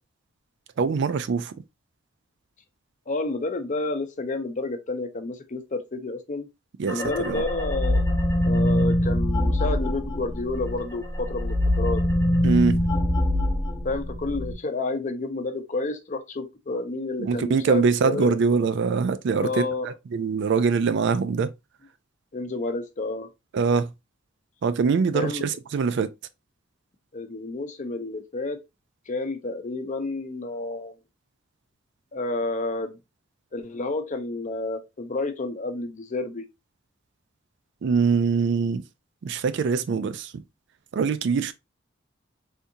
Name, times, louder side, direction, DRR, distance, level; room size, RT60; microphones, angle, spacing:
voice 1, 0.8-1.5 6.8-7.4 12.4-12.8 17.2-19.6 20.1-21.5 23.5-23.9 24.6-26.1 37.8-38.8 39.2-40.3 40.9-41.5, right 5 dB, 65° right, 0.4 m, -23 dB
voice 2, 3.1-6.5 6.8-8.1 8.4-12.0 13.8-18.4 19.4-19.9 22.3-23.3 25.1-25.4 27.1-28.6 29.1-30.9 32.1-33.0 33.5-36.4, left 2 dB, 40° left, 0.6 m, -30 dB
sound 1, 6.9-10.8 11.1-14.5, left 1 dB, 20° left, 0.9 m, -23 dB
3.5 x 2.7 x 2.7 m
head